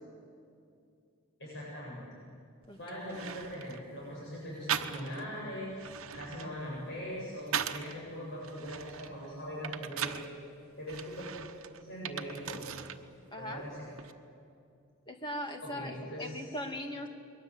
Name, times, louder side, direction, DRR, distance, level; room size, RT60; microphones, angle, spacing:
voice 1, 1.4-2.2 2.8-5.7 6.1-10.2 10.8-11.3 11.8-12.8 13.4-13.8 15.6-16.6, equal, 55° left, -5 dB, 7.7 m, -41 dB
sound 1, 2.6-2.7 3.1-3.8 4.7-5.3 5.7-8.0 8.4-10.3 10.9-13.0 13.3-14.1, right 8 dB, 75° right, 1.1 m, -39 dB
voice 2, 13.3-13.6 15.1-17.1, equal, 20° left, 4 dB, 2.1 m, -39 dB
28.5 x 22.0 x 8.1 m, 2.5 s
head